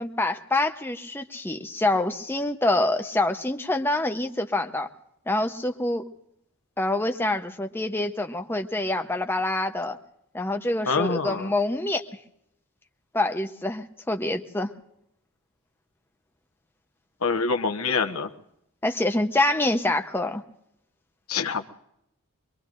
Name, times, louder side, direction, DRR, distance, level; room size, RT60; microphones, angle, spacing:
voice 1, 0.0-4.9 5.3-6.0 6.8-10.0 10.3-12.1 13.1-14.7 18.8-20.4, left 2 dB, 10° left, 5 dB, 0.8 m, -26 dB
voice 2, 10.9-11.5 17.2-18.3 21.3-21.7, left 4 dB, 70° left, 6 dB, 1.1 m, -25 dB
25.0 x 22.5 x 2.5 m, 0.79 s
head